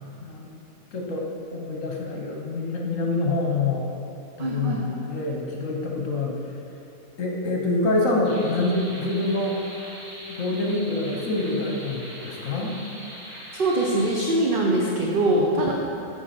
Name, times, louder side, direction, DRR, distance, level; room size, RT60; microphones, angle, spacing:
voice 1, 0.9-3.9 4.4-6.4 7.2-9.6 10.3-12.8, left 2 dB, 65° left, 0 dB, 1.3 m, -26 dB
voice 2, 4.4-4.8 13.5-15.7, right 1 dB, 50° right, -2 dB, 0.7 m, -23 dB
sound 1, 8.2-14.2, equal, 85° right, 2.5 m, -41 dB
7.6 x 4.5 x 5.8 m, 2.8 s
omnidirectional pair, 1.5 m